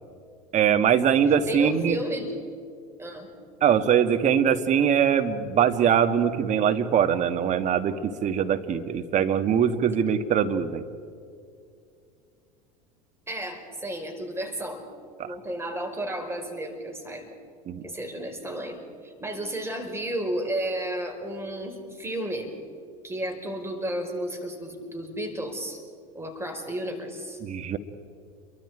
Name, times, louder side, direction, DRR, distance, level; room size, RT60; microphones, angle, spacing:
voice 1, 0.5-2.0 3.6-10.8 15.2-15.4 17.7-17.8 27.4-27.8, right 8 dB, 40° right, 8 dB, 1.7 m, -22 dB
voice 2, 1.5-2.3 3.0-3.3 13.3-14.8 15.2-17.3 17.8-18.8 19.0-22.5 23.0-25.8 26.1-27.4, right 1 dB, 15° right, 3 dB, 5.2 m, -32 dB
29.5 x 23.5 x 5.0 m, 2.3 s
hypercardioid pair, 80°, 19 cm